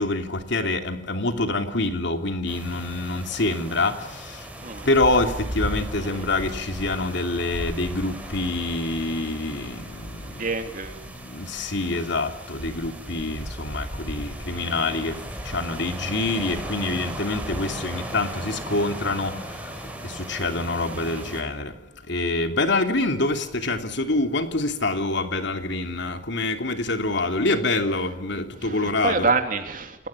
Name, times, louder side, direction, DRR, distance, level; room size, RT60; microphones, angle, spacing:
voice 1, 0.0-4.5 4.8-10.4 11.0-21.8 22.1-29.3, left 2 dB, 65° left, 3.0 m, -26 dB
sound 1, 2.5-21.4, equal, 10° right, 5.3 m, -36 dB
voice 2, 10.3-11.0 14.5-15.1 20.8-21.4 28.6-30.1, right 4 dB, 45° right, 3.3 m, -28 dB
29.5 x 18.5 x 8.6 m
head